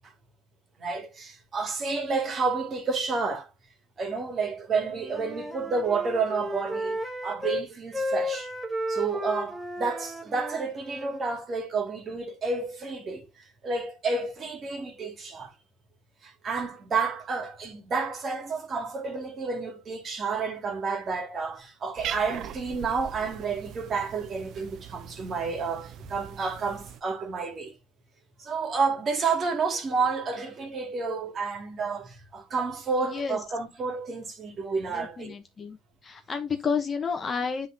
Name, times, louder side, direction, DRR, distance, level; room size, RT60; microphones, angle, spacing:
voice 1, 0.8-3.5 4.0-8.5 8.9-15.5 16.2-27.7 28.4-35.3, right 4 dB, 35° right, 2.2 m, -30 dB
Wind instrument woodwind instrument, 4.8-7.7 7.9-11.2, left 1 dB, 5° right, 1.2 m, -34 dB
Cat, 21.9-27.0, right 10 dB, 55° right, 0.6 m, -41 dB
voice 2, 33.0-33.4 34.9-35.8 36.0-37.7, left 5 dB, 30° left, 1.0 m, -30 dB
10.0 x 3.8 x 2.7 m
cardioid pair, 120°, 0 cm